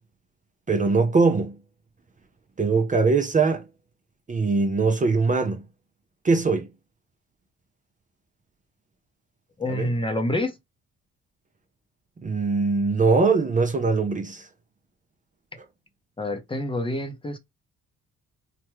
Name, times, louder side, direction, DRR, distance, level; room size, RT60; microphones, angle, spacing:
voice 1, 0.7-1.6 2.6-3.7 4.3-5.6 6.2-6.7 9.7-9.9 12.2-14.5, right 4 dB, 25° right, 0.6 m, -21 dB
voice 2, 9.6-10.5 16.2-17.4, left 1 dB, 15° left, 0.7 m, -27 dB
3.4 x 2.1 x 3.1 m
cardioid pair, 90°, 30 cm